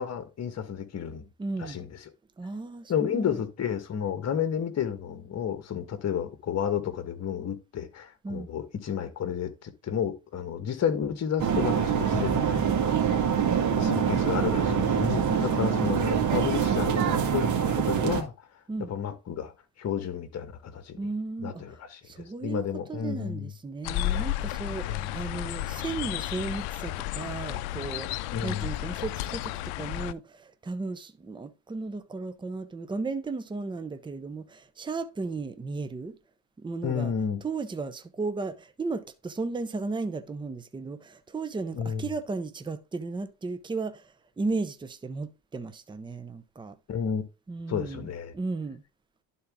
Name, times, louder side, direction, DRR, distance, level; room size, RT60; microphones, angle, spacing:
voice 1, 0.0-1.3 1.6-2.0 2.9-13.0 13.8-18.3 18.9-19.5 19.8-21.0 21.4-23.5 24.9-25.1 28.3-28.7 36.8-37.4 41.7-42.0 46.9-47.2 47.7-48.3, left 8 dB, 40° left, 1.5 m, -31 dB
voice 2, 1.4-1.8 2.4-3.4 8.2-8.5 15.3-16.2 18.7-18.9 21.0-36.2 36.6-37.1 37.4-46.8 47.5-48.1 48.3-48.8, right 3 dB, 10° right, 0.7 m, -35 dB
sound 1, 11.4-18.2, right 7 dB, 50° right, 1.7 m, -25 dB
sound 2, 23.8-30.1, left 15 dB, 85° left, 0.5 m, -32 dB
11.0 x 4.1 x 3.6 m
cardioid pair, 110°, 38 cm